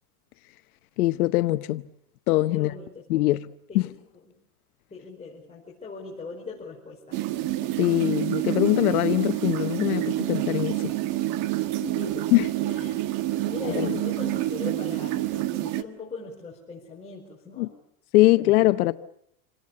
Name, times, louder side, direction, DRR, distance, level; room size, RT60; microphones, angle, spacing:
voice 1, 1.0-1.8 2.3-2.7 3.1-3.5 3.7-3.9 7.8-10.9 12.3-12.5 13.7-13.9 17.6-17.7 18.1-18.9, left 18 dB, 80° left, 0.9 m, -22 dB
voice 2, 2.5-3.0 3.7-3.8 4.9-7.2 11.8-12.3 12.6-13.1 13.4-17.7 18.2-18.5, left 4 dB, 15° left, 5.1 m, -40 dB
sound 1, 7.1-15.8, right 15 dB, 45° right, 1.6 m, -28 dB
27.5 x 18.5 x 8.5 m
supercardioid pair, 135°, 44 cm